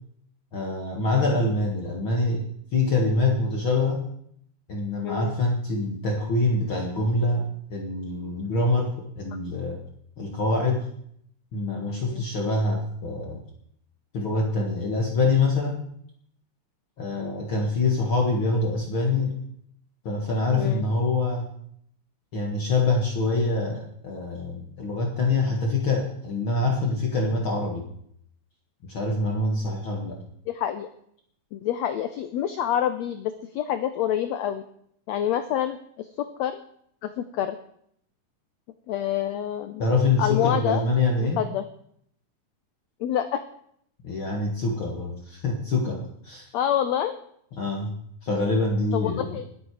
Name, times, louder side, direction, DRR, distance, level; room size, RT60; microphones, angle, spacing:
voice 1, 0.5-2.4 2.7-4.0 4.7-9.8 10.2-10.9 11.5-13.4 14.1-15.8 17.0-19.4 20.0-21.5 22.3-27.8 28.9-30.2 39.8-41.4 44.0-46.5 47.6-47.9 48.2-49.3, left 3 dB, 45° left, 0 dB, 2.0 m, -25 dB
voice 2, 5.0-5.3 12.0-12.2 20.6-20.8 30.5-30.9 31.5-34.6 35.1-36.6 37.0-37.6 38.9-39.9 40.2-40.8 41.4-41.6 43.0-43.4 46.5-47.2 48.9-49.5, left 10 dB, 85° left, 10 dB, 1.5 m, -27 dB
20.5 x 9.0 x 4.8 m, 0.69 s
omnidirectional pair, 4.0 m